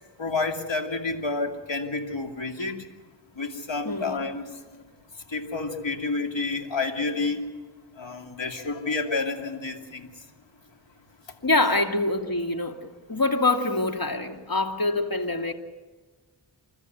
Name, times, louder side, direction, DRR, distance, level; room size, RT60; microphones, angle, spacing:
voice 1, 0.2-2.8 3.4-4.4 5.3-7.4 8.0-10.1, left 3 dB, 75° left, 4 dB, 2.8 m, -29 dB
voice 2, 3.8-4.2 11.4-15.5, left 2 dB, 50° left, 4 dB, 2.6 m, -25 dB
29.5 x 13.5 x 9.4 m, 1.3 s
wide cardioid pair, 45°, 45 cm